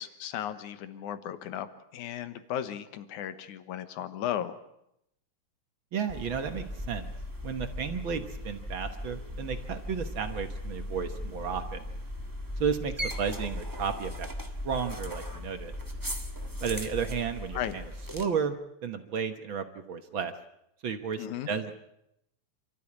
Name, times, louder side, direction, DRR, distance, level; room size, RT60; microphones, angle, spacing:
voice 1, 0.0-1.7 1.9-4.6 17.5-17.8 21.2-21.5, left 10 dB, 80° left, 11 dB, 2.6 m, -35 dB
voice 2, 5.9-7.0 7.4-11.9 12.6-14.3 14.6-15.7 16.6-17.8 18.1-18.5 18.8-20.3 20.8-21.7, right 6 dB, 55° right, 8 dB, 1.5 m, -33 dB
sound 1, 6.1-18.2, left 1 dB, 20° right, 0.6 m, -38 dB
28.5 x 13.5 x 8.6 m, 0.80 s
omnidirectional pair, 3.5 m